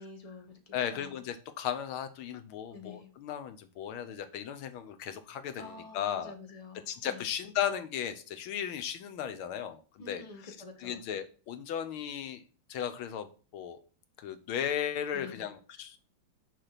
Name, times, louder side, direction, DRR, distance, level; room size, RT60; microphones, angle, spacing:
voice 1, 0.0-1.2 2.7-3.1 5.6-7.3 10.0-11.0 15.1-15.5, left 3 dB, 20° left, 4 dB, 1.0 m, -48 dB
voice 2, 0.7-6.3 6.9-10.5 10.8-12.4 12.7-13.8 14.2-16.0, left 9 dB, 80° left, 10 dB, 1.7 m, -36 dB
6.8 x 4.8 x 5.8 m, 0.38 s
omnidirectional pair, 2.3 m